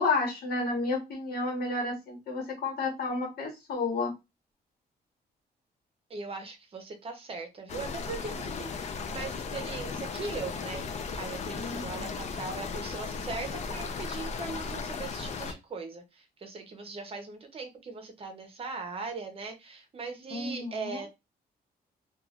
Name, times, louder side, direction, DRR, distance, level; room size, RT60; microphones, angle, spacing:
voice 1, 0.0-4.1 11.6-12.1 20.3-21.0, left 3 dB, 70° left, 1 dB, 1.2 m, -31 dB
voice 2, 6.1-21.1, right 4 dB, 35° right, 5 dB, 0.7 m, -40 dB
sound 1, 7.7-15.5, left 5 dB, 45° left, 0.4 m, -36 dB
3.1 x 2.3 x 2.4 m, 0.23 s
wide cardioid pair, 155°, 17 cm